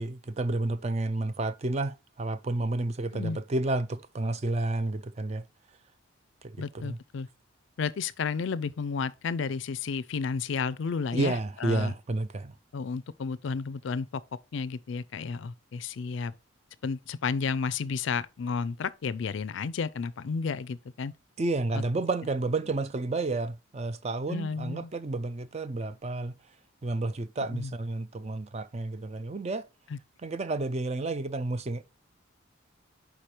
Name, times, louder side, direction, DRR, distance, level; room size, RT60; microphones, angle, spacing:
voice 1, 0.0-5.4 6.4-7.0 11.1-12.5 21.4-26.3 26.8-29.6 30.2-31.8, right 2 dB, 30° right, 0.4 m, -31 dB
voice 2, 6.6-7.3 7.8-11.9 12.7-14.1 14.5-16.3 16.8-21.1 21.7-21.8 24.3-24.9 27.5-27.7 29.9-30.0, left 5 dB, 65° left, 0.4 m, -32 dB
4.9 x 4.4 x 4.8 m
head